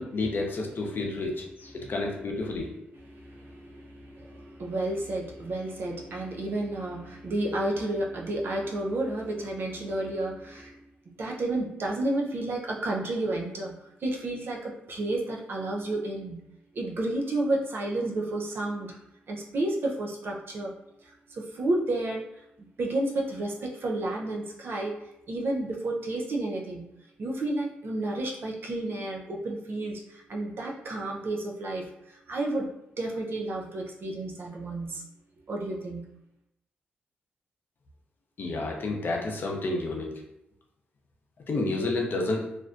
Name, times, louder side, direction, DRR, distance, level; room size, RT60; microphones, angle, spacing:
voice 1, 0.0-2.7 38.4-40.1 41.5-42.5, left 2 dB, 55° left, 0 dB, 0.6 m, -30 dB
voice 2, 3.1-10.8 11.2-13.7 14.0-16.4 16.7-19.0 19.3-20.7 21.1-22.2 22.8-25.0 25.3-26.8 27.2-32.7 33.0-35.0 35.5-36.0, right 2 dB, 60° right, -1 dB, 0.5 m, -31 dB
2.5 x 2.1 x 2.4 m, 0.84 s
supercardioid pair, 55°, 4 cm